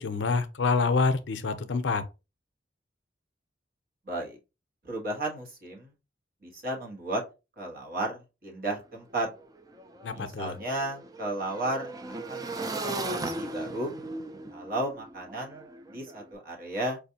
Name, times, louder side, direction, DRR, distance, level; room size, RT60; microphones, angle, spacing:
voice 1, 0.0-2.1 10.0-10.6, left 4 dB, 75° left, 0.5 m, -27 dB
voice 2, 4.1-4.4 4.8-5.9 6.4-7.2 7.6-9.3 10.1-11.9 12.3-13.9 14.5-17.0, right 1 dB, 55° right, 1.2 m, -34 dB
Motorcycle / Engine, 8.8-8.9 9.1-16.2, right 2 dB, 20° right, 0.3 m, -38 dB
4.7 x 2.5 x 2.7 m
head